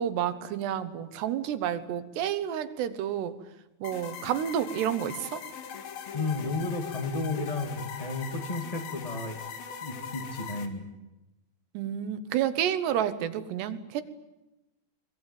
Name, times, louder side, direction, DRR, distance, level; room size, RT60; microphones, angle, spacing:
voice 1, 0.0-3.4 3.8-5.5 11.8-14.0, right 10 dB, 80° right, 11 dB, 3.4 m, -30 dB
sound 1, 3.8-10.7, left 7 dB, 65° left, 3.6 m, -40 dB
voice 2, 6.1-9.4 9.8-10.9, left 3 dB, 20° left, 6 dB, 1.0 m, -33 dB
23.5 x 21.5 x 9.1 m, 0.98 s
omnidirectional pair, 4.8 m